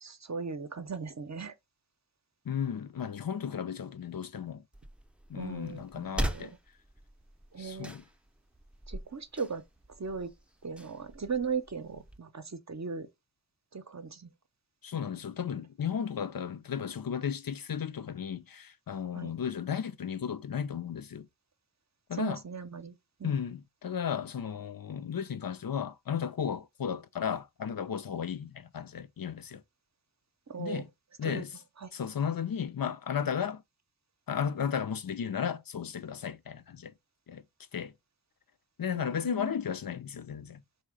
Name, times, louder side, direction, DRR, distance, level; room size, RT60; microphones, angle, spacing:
voice 1, 0.0-1.5 5.3-6.6 7.5-7.9 8.9-9.6 10.0-10.3 10.6-13.1 13.7-14.3 19.1-19.3 22.1-22.9 23.2-23.4 30.5-30.8 31.2-31.4 31.8-31.9 38.9-39.5, right 5 dB, 45° right, 0.7 m, -38 dB
voice 2, 2.5-4.6 5.3-6.5 7.6-8.0 14.8-21.3 22.1-22.4 23.2-29.6 30.6-30.9 31.2-31.5 31.9-33.6 34.3-36.9 37.3-37.4 37.7-37.9 38.8-40.6, left 8 dB, 60° left, 0.6 m, -34 dB
sound 1, 4.7-12.2, right 1 dB, 5° right, 0.5 m, -41 dB
3.8 x 2.8 x 4.8 m
wide cardioid pair, 50°, 39 cm